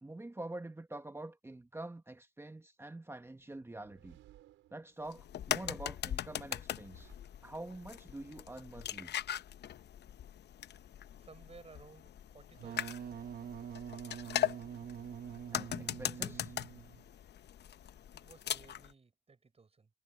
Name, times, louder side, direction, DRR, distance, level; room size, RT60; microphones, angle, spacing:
voice 1, 0.0-4.2 4.7-7.1 7.4-9.1 15.5-16.5, right 2 dB, 10° right, 1.4 m, -46 dB
sound 1, 3.4-5.4 6.4-7.9, right 14 dB, 90° right, 5.6 m, -63 dB
sound 2, 5.1-18.9, left 10 dB, 60° left, 0.8 m, -40 dB
voice 2, 11.2-12.9 18.1-19.9, right 4 dB, 30° right, 6.1 m, -57 dB
Wind instrument woodwind instrument, 12.5-17.1, right 8 dB, 50° right, 0.9 m, -45 dB
cardioid pair, 90°, 20 cm